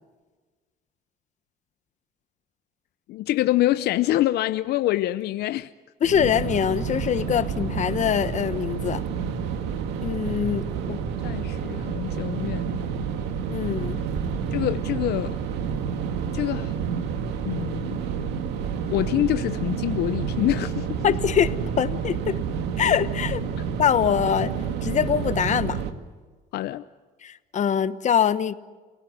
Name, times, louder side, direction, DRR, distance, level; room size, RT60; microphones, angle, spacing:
voice 1, 3.1-5.7 11.2-12.8 14.5-15.4 16.3-16.8 17.5-18.0 18.9-21.2 26.5-26.8, left 15 dB, 75° left, 0.7 m, -26 dB
voice 2, 6.0-9.0 10.0-11.0 13.5-14.0 21.0-21.5 21.8-22.4 22.8-23.4 23.8-24.5 24.8-25.8 27.2-28.5, left 8 dB, 45° left, 1.1 m, -23 dB
sound 1, 6.0-25.9, right 6 dB, 90° right, 2.0 m, -29 dB
29.0 x 17.5 x 9.6 m
cardioid pair, 110°, 17 cm